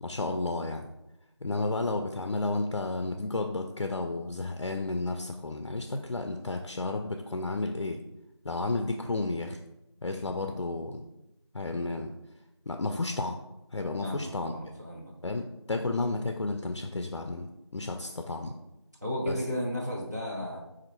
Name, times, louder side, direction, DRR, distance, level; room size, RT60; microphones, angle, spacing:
voice 1, 0.0-0.8 1.4-8.0 8.4-9.6 10.0-11.0 11.5-12.1 12.7-13.4 13.7-14.5 15.2-17.5 17.7-18.5 19.3-19.4, left 2 dB, 70° left, 5 dB, 0.4 m, -32 dB
voice 2, 14.0-15.1 19.0-20.6, left 1 dB, 35° right, -3 dB, 0.6 m, -34 dB
4.3 x 2.5 x 4.2 m, 0.93 s
figure-of-eight pair, 175°, 15 cm